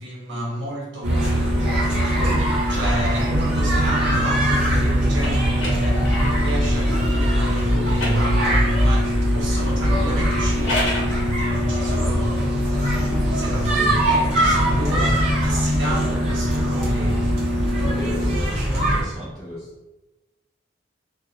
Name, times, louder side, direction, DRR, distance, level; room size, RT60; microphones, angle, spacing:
voice 1, 0.0-12.4 12.6-17.4, right 1 dB, 85° right, -3 dB, 0.8 m, -31 dB
sound 1, 1.0-19.0, equal, 35° right, 0.9 m, -21 dB
sound 2, 1.0-18.4, left 1 dB, 60° right, 0.3 m, -29 dB
sound 3, 2.7-6.7 7.5-8.9 10.3-11.2, left 1 dB, 80° left, 0.7 m, -33 dB
voice 2, 18.0-19.7, equal, 5° left, -10 dB, 0.6 m, -35 dB
2.2 x 2.1 x 2.9 m, 1.0 s
head